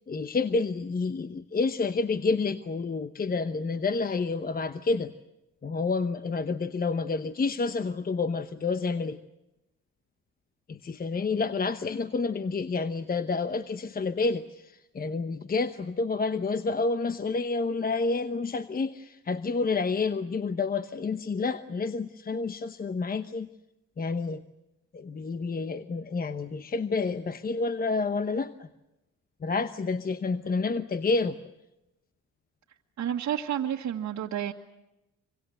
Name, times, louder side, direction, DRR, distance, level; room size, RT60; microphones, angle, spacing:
voice 1, 0.1-5.1 5.6-9.2 10.7-23.5 24.0-24.4 24.9-28.7 29.4-31.4, left 4 dB, 30° left, 11 dB, 0.9 m, -29 dB
voice 2, 33.0-34.5, right 10 dB, 65° right, -1 dB, 1.7 m, -30 dB
26.0 x 24.0 x 7.9 m, 0.95 s
cardioid pair, 90°, 30 cm